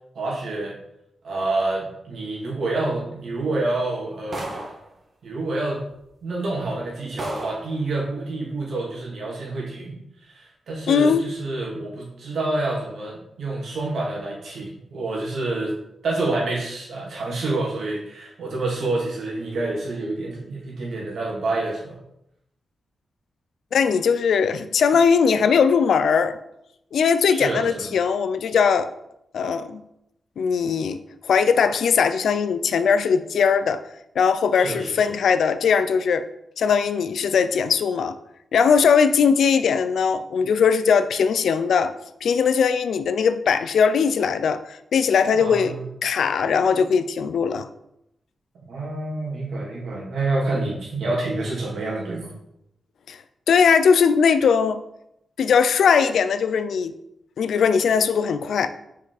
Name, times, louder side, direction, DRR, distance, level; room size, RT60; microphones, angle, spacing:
voice 1, 0.1-0.8 1.2-4.6 5.2-5.8 6.2-10.0 10.2-15.8 16.0-22.0 27.3-27.9 34.6-35.2 45.3-45.8 48.7-52.3, right 2 dB, 70° right, -3 dB, 2.4 m, -28 dB
sound 1, 4.3-4.9 5.9-6.0 6.6-6.7 7.2-7.7, right 2 dB, 40° right, 1.5 m, -33 dB
voice 2, 10.9-11.2 23.7-26.4 26.9-28.9 29.3-29.8 30.4-33.8 34.2-36.3 36.6-38.2 38.5-41.9 42.2-47.7 53.1-53.2 53.5-54.8 55.4-56.9 57.4-58.7, left 6 dB, 80° left, 12 dB, 0.4 m, -20 dB
6.0 x 4.9 x 4.0 m, 0.81 s
cardioid pair, 100°, 0 cm